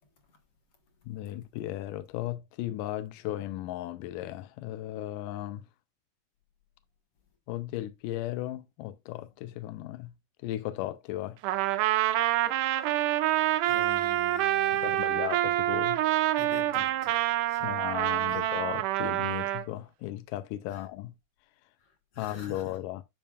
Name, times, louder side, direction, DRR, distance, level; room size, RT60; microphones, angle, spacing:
voice 1, 1.1-5.6 7.5-10.1 10.4-11.4 14.7-16.0 17.6-21.1 22.2-23.0, left 14 dB, 90° left, 2.3 m, -36 dB
Trumpet, 11.4-19.6, right 14 dB, 85° right, 2.2 m, -27 dB
voice 2, 12.7-13.2 13.6-15.4 16.4-17.8 18.3-18.5 20.7-20.9 21.8-22.8, left 5 dB, 50° left, 2.2 m, -47 dB
11.0 x 6.9 x 2.4 m
omnidirectional pair, 3.7 m